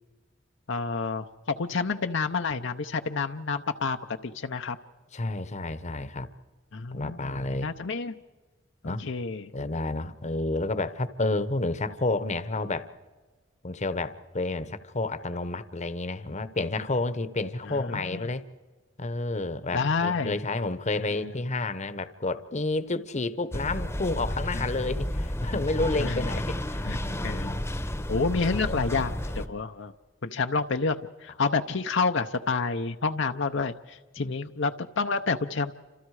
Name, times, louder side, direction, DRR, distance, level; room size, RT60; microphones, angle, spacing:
voice 1, 0.7-4.8 6.7-8.2 8.8-9.5 17.7-18.3 19.7-20.3 21.1-21.3 26.0-26.2 26.8-27.0 27.2-27.5 28.1-29.9 30.2-35.7, left 4 dB, 65° left, 7 dB, 0.8 m, -29 dB
voice 2, 5.1-6.3 6.9-7.7 8.8-9.0 9.5-12.9 13.6-18.5 19.0-27.6 28.4-29.0 34.2-34.3, left 2 dB, 35° left, 13 dB, 1.0 m, -30 dB
sound 1, 23.5-29.5, left 1 dB, 15° left, 1.0 m, -31 dB
29.5 x 26.5 x 4.9 m, 1.3 s
head